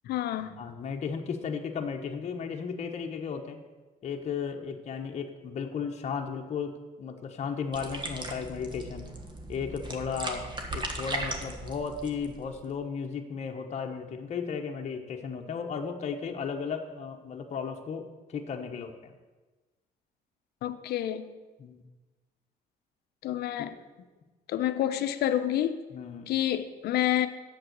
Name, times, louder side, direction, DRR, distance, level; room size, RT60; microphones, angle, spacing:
voice 1, 0.0-0.6 20.6-21.3 23.2-23.8 24.5-25.8 26.3-27.3, left 12 dB, 70° left, 0.8 m, -28 dB
voice 2, 0.6-3.6 4.0-9.1 9.5-10.5 10.7-19.1 21.6-21.8 23.6-23.7 25.9-26.3, left 6 dB, 40° left, 1.1 m, -35 dB
sound 1, 7.7-12.7, right 2 dB, 25° right, 1.3 m, -38 dB
7.8 x 7.0 x 7.8 m
cardioid pair, 110°, 17 cm